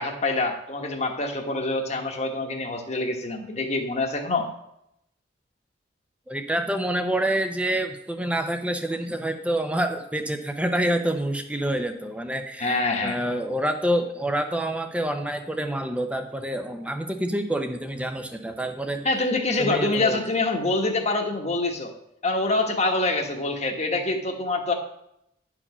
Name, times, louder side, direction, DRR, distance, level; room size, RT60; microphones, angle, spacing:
voice 1, 0.0-4.5 12.6-13.2 19.0-21.9 22.2-24.7, left 2 dB, 35° left, 3 dB, 1.3 m, -25 dB
voice 2, 6.3-19.1 19.6-20.2, right 1 dB, 5° right, 6 dB, 0.7 m, -27 dB
10.5 x 4.9 x 5.5 m, 0.79 s
head